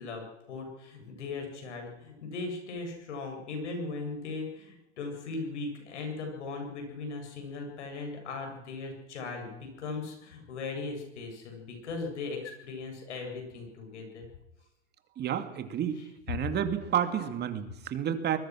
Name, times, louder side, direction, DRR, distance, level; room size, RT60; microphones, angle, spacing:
voice 1, 0.0-14.3 15.9-16.1, left 3 dB, 85° left, 3 dB, 7.8 m, -38 dB
voice 2, 15.2-16.0 16.3-18.4, right 9 dB, 30° right, 9 dB, 2.2 m, -30 dB
24.5 x 20.5 x 6.3 m, 0.91 s
supercardioid pair, 125°, 34 cm